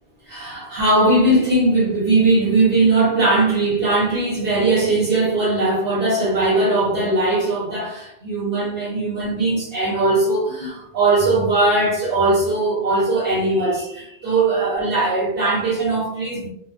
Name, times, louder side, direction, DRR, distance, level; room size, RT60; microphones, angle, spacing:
voice 1, 0.2-16.5, right 2 dB, 55° right, 0.9 m, -19 dB
2.4 x 2.4 x 2.3 m
omnidirectional pair, 1.1 m